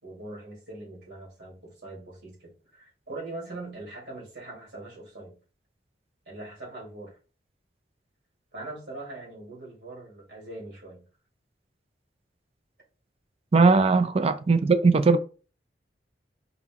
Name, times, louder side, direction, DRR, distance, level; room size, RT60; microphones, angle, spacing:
voice 1, 0.0-5.4 6.3-7.1 8.5-11.1 13.7-13.9, right 2 dB, 75° right, 2.3 m, -42 dB
voice 2, 13.5-15.2, right 4 dB, 35° right, 0.4 m, -19 dB
4.1 x 2.9 x 3.5 m
head